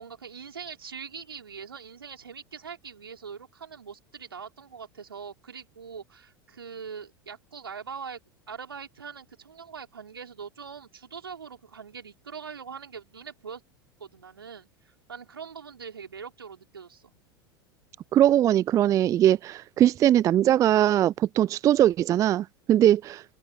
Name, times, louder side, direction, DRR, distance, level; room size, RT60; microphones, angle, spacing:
voice 1, 0.0-8.2 8.5-13.6 14.0-14.7 15.1-17.1, right 6 dB, 75° right, 4.7 m, -42 dB
voice 2, 18.1-23.2, right 12 dB, 25° right, 0.4 m, -21 dB
open air
figure-of-eight pair, 80°, 12 cm